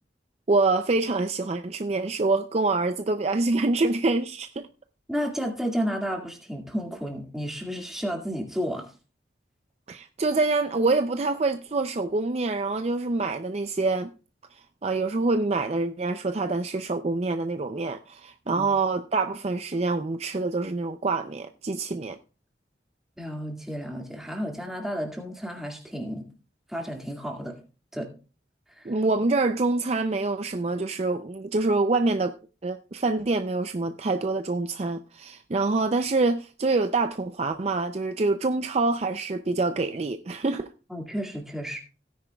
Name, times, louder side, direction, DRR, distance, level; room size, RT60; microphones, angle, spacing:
voice 1, 0.5-4.7 9.9-14.1 14.8-22.2 28.9-32.4 32.6-40.7, right 3 dB, 35° right, 0.4 m, -26 dB
voice 2, 5.1-8.9 18.5-18.7 23.2-26.3 26.7-27.6 27.9-28.1 28.8-28.9 40.9-41.8, equal, ahead, 2.0 m, -32 dB
17.0 x 9.7 x 2.3 m
head